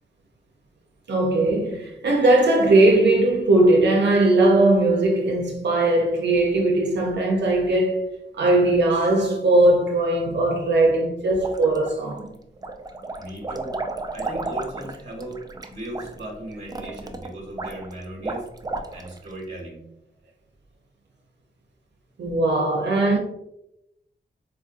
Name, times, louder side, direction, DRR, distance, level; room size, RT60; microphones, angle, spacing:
voice 1, 1.1-8.1 8.3-12.3 22.2-23.2, right 2 dB, 70° right, 0.5 m, -19 dB
sound 1, 11.4-12.2 12.6-19.3, right 3 dB, 20° right, 0.3 m, -33 dB
voice 2, 13.2-13.8 14.1-18.5 18.9-19.8, right 1 dB, 40° right, 1.1 m, -37 dB
4.3 x 2.5 x 2.4 m
wide cardioid pair, 95°, 19 cm